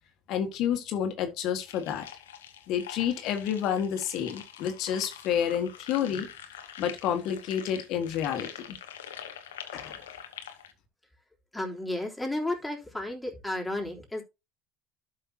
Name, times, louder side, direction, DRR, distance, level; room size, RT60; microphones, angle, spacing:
voice 1, 0.3-2.1 2.7-6.3 6.8-8.8 9.7-10.0, left 9 dB, 60° left, 1.7 m, -29 dB
sound 1, 1.6-10.7, left 9 dB, 90° left, 1.1 m, -45 dB
voice 2, 11.5-14.2, left 1 dB, 5° left, 3.6 m, -33 dB
12.0 x 5.7 x 2.9 m
hypercardioid pair, 80°, 0 cm